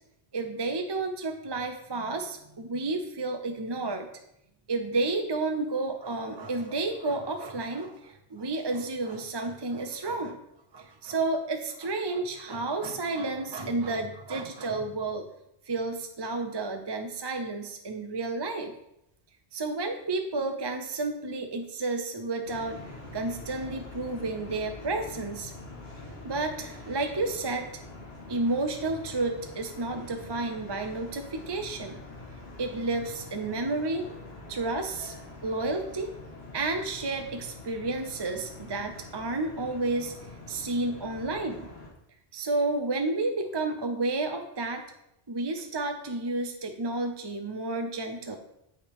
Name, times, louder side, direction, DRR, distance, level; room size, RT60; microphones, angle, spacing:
voice 1, 0.3-4.1 4.7-10.4 10.7-15.2 15.7-18.7 19.5-25.5 26.2-27.7 28.3-32.0 32.6-34.1 34.5-35.1 35.4-36.1 36.5-40.1 40.5-41.7 42.3-44.8 45.3-48.4, right 2 dB, 30° right, 5 dB, 0.5 m, -31 dB
sound 1, 22.4-41.9, left 2 dB, 80° left, 1.7 m, -45 dB
7.9 x 5.6 x 3.5 m, 0.80 s
omnidirectional pair, 1.0 m